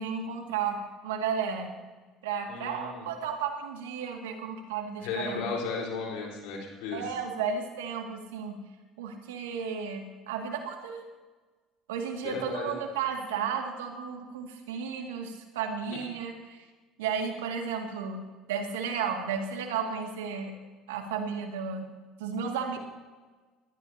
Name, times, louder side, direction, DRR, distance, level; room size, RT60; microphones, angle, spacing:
voice 1, 0.0-1.7 2.2-5.5 6.9-8.6 9.0-11.0 11.9-16.7 17.0-20.5 20.9-21.9 22.2-22.8, right 6 dB, 90° right, 2 dB, 2.2 m, -33 dB
voice 2, 2.5-3.1 5.0-7.1 12.2-12.7, left 4 dB, 75° left, -1 dB, 4.4 m, -35 dB
21.5 x 14.5 x 2.9 m, 1.3 s
hypercardioid pair, 75°, 0 cm